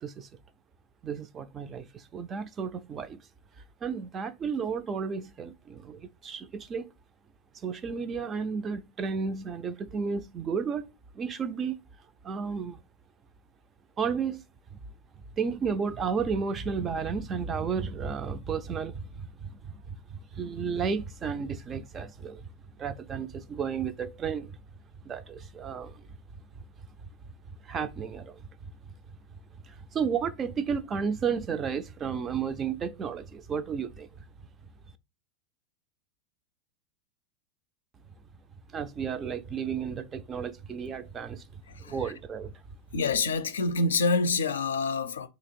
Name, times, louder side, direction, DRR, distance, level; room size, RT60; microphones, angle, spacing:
voice 1, 1.0-3.2 3.8-6.9 7.6-10.9 11.1-11.8 12.2-12.8 14.0-14.4 15.4-22.5 22.8-24.6 25.0-26.0 27.6-28.5 29.7-34.2 38.7-42.6, right 6 dB, 30° right, 0.5 m, -33 dB
voice 2, 41.7-42.1 42.9-45.3, left 3 dB, 85° left, 0.4 m, -27 dB
3.0 x 2.9 x 4.3 m
hypercardioid pair, 95°, 0 cm